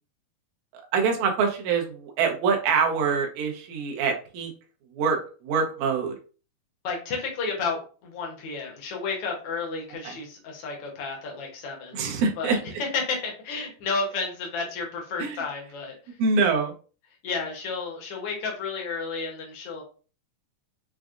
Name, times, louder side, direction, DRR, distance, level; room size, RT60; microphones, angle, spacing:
voice 1, 0.9-4.5 5.0-5.2 5.4-6.1 10.0-10.1 11.9-12.6 15.2-15.4 16.2-16.7, right 5 dB, 70° right, 1 dB, 1.9 m, -24 dB
voice 2, 6.8-12.0 12.4-15.9 17.2-19.8, left 4 dB, 75° left, 0 dB, 1.3 m, -32 dB
6.0 x 2.4 x 2.4 m, 0.37 s
omnidirectional pair, 4.1 m